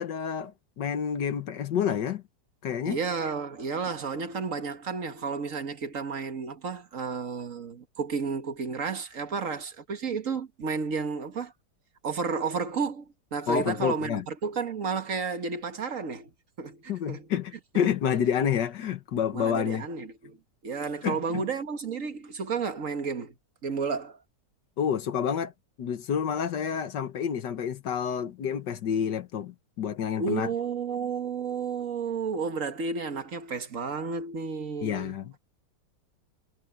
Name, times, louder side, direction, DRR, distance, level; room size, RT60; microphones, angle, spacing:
voice 1, 0.0-2.2 2.6-3.0 13.5-14.2 16.9-19.9 21.0-21.4 24.8-25.5 25.8-30.5 34.8-35.4, left 8 dB, 80° left, 1.8 m, -29 dB
voice 2, 2.9-11.5 12.0-16.3 16.6-17.3 19.3-20.4 20.6-23.3 23.6-24.2 30.2-35.2, right 5 dB, 50° right, 1.8 m, -32 dB
omnidirectional pair, 1.9 m